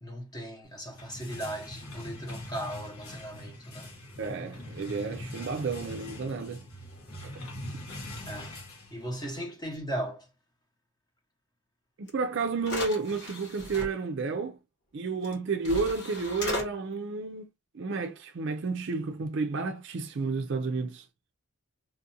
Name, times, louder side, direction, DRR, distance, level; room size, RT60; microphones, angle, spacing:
voice 1, 0.0-3.9 8.2-8.5 8.9-10.3, right 1 dB, 15° left, 0.8 m, -37 dB
sound 1, 0.7-9.4, left 1 dB, 75° left, 1.2 m, -42 dB
voice 2, 4.2-6.7 7.2-7.3 12.0-14.6 14.9-17.5 17.7-21.1, right 4 dB, 55° right, 0.4 m, -31 dB
sound 2, 12.1-12.2 12.6-13.9 15.2-15.3 15.6-16.7, left 2 dB, 50° left, 1.1 m, -36 dB
4.5 x 2.4 x 2.8 m
head